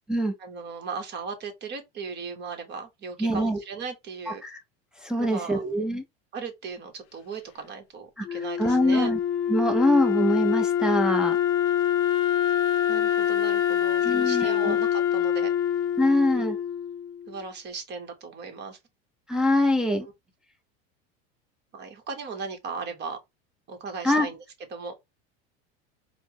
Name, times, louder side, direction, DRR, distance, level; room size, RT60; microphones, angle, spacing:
voice 1, 0.4-4.4 5.2-5.6 6.3-9.1 12.9-15.5 16.3-16.4 17.3-18.8 21.7-23.2 23.7-24.4 24.7-24.9, right 5 dB, 35° right, 1.0 m, -37 dB
voice 2, 3.2-3.6 4.3-4.6 5.0-6.0 8.2-9.2 9.5-11.4 14.0-14.8 16.0-16.6 19.3-20.1 24.0-24.3, left 1 dB, ahead, 0.5 m, -24 dB
Wind instrument woodwind instrument, 8.2-17.3, left 10 dB, 50° left, 0.6 m, -25 dB
4.2 x 2.0 x 2.9 m
supercardioid pair, 120°, 30 cm